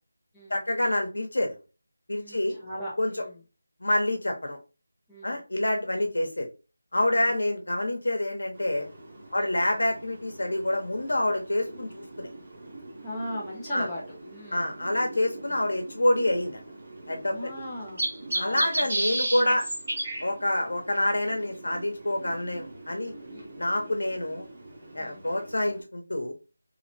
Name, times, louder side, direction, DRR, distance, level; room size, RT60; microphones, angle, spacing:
voice 1, 0.5-1.5 2.1-2.5 3.0-3.1 3.8-4.6 5.2-6.5 6.9-8.9 9.3-12.3 13.7-13.9 14.5-16.6 17.1-17.5 18.3-19.7 20.2-23.1 23.6-24.5 24.9-26.3, left 1 dB, 80° left, 3 dB, 0.9 m, -27 dB
voice 2, 2.2-3.4 5.1-5.4 5.9-6.1 7.0-7.4 9.4-9.5 13.0-14.8 15.5-15.6 17.3-18.0 18.3-19.0 23.3-23.9 25.0-25.2, equal, 5° left, -10 dB, 0.4 m, -39 dB
sound 1, 8.5-25.8, right 1 dB, 35° right, 0.7 m, -37 dB
2.9 x 2.0 x 2.6 m, 0.31 s
figure-of-eight pair, 180°, 0 cm